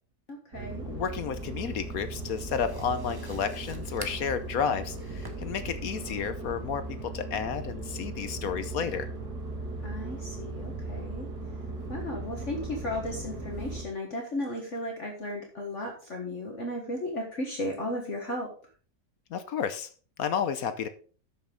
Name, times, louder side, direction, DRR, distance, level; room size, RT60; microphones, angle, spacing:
voice 1, 0.3-0.9 9.8-11.3 11.9-18.5, left 1 dB, 45° left, 1 dB, 1.8 m, -35 dB
sound 1, 0.5-13.8, right 2 dB, 70° right, 2.9 m, -38 dB
voice 2, 0.9-9.1 19.3-19.9 20.2-20.9, left 7 dB, 60° left, 11 dB, 1.1 m, -31 dB
sound 2, 1.4-6.5, right 2 dB, 20° right, 0.7 m, -50 dB
12.5 x 6.5 x 3.8 m, 0.40 s
omnidirectional pair, 1.8 m